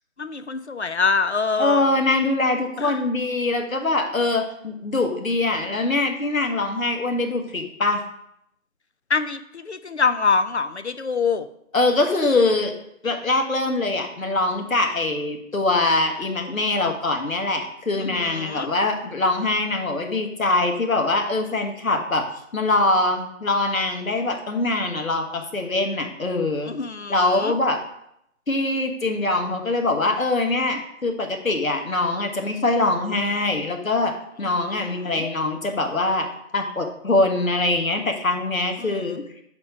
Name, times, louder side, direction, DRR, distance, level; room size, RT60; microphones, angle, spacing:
voice 1, 0.2-2.0 2.8-3.0 9.1-11.5 18.0-18.7 26.7-27.5 34.4-35.2 38.8-39.2, left 4 dB, 55° left, 12 dB, 0.5 m, -25 dB
voice 2, 1.6-8.0 11.7-12.7 13.0-22.3 22.5-26.7 27.1-27.8 28.5-36.3 36.5-39.2, left 2 dB, 75° left, 4 dB, 1.5 m, -23 dB
6.6 x 4.3 x 5.7 m, 0.76 s
figure-of-eight pair, 175°, 41 cm